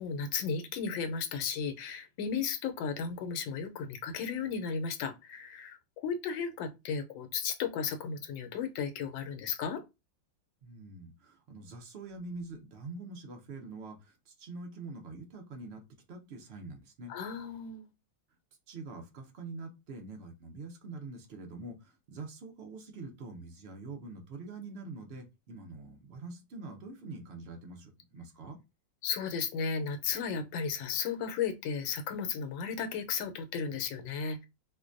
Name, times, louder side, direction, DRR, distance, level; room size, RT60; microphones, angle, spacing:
voice 1, 0.0-9.8 17.1-17.9 29.0-34.4, left 6 dB, 85° left, 1.4 m, -34 dB
voice 2, 10.6-15.8 16.1-17.1 18.7-28.6, right 3 dB, 70° right, 0.6 m, -45 dB
4.6 x 2.2 x 2.5 m
omnidirectional pair, 2.0 m